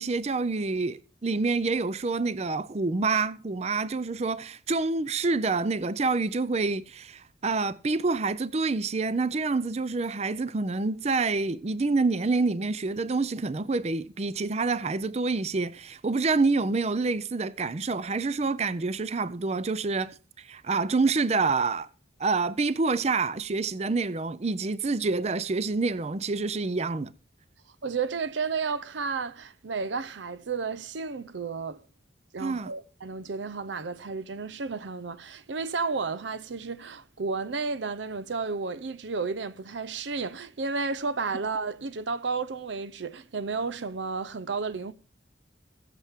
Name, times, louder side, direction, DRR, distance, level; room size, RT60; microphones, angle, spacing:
voice 1, 0.0-21.9 22.2-27.1 32.4-32.7, right 3 dB, 35° right, 0.5 m, -27 dB
voice 2, 27.8-31.8 32.3-44.9, right 4 dB, 85° right, 0.7 m, -32 dB
21.0 x 7.3 x 3.6 m
head